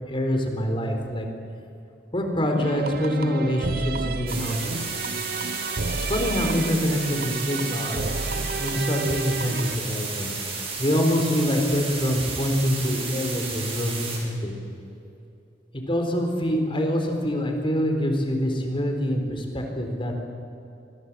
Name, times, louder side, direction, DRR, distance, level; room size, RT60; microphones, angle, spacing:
voice 1, 0.1-1.3 2.1-4.9 5.9-8.1 8.6-10.3 10.8-14.5 15.7-20.2, equal, 30° left, 4 dB, 4.1 m, -25 dB
sound 1, 2.6-9.8, right 3 dB, 60° right, 0.9 m, -31 dB
sound 2, 4.3-14.2, right 4 dB, 35° right, 6.3 m, -33 dB
26.0 x 22.0 x 7.6 m, 2.7 s
head